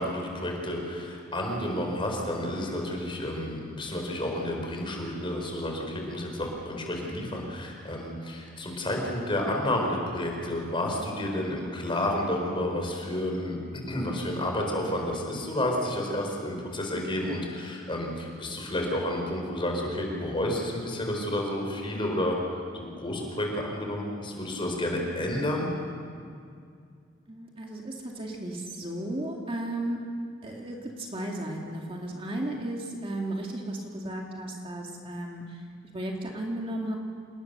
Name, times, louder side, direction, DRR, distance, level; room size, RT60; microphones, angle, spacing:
voice 1, 0.0-13.6 13.9-25.7, left 1 dB, 25° left, 1 dB, 4.5 m, -30 dB
voice 2, 27.3-30.0 30.4-35.6 35.9-37.0, right 1 dB, 30° right, 0 dB, 2.3 m, -34 dB
27.5 x 19.5 x 6.8 m, 2.3 s
head